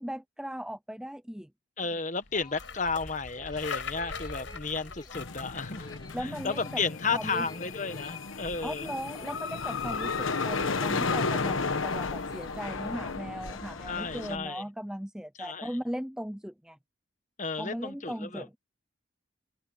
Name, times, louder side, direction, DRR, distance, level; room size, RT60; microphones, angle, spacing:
voice 1, 0.0-1.5 6.1-6.8 7.1-7.5 8.6-16.8 17.6-18.6, equal, 5° right, 0.6 m, -38 dB
voice 2, 1.8-5.9 6.2-8.9 13.8-14.6 15.4-15.7 17.4-18.5, left 4 dB, 40° left, 1.2 m, -33 dB
sound 1, 2.2-14.5, left 3 dB, 75° left, 5.9 m, -45 dB
sound 2, 2.2-14.2, left 2 dB, 20° left, 3.0 m, -53 dB
sound 3, 5.1-14.4, left 4 dB, 90° left, 1.2 m, -33 dB
head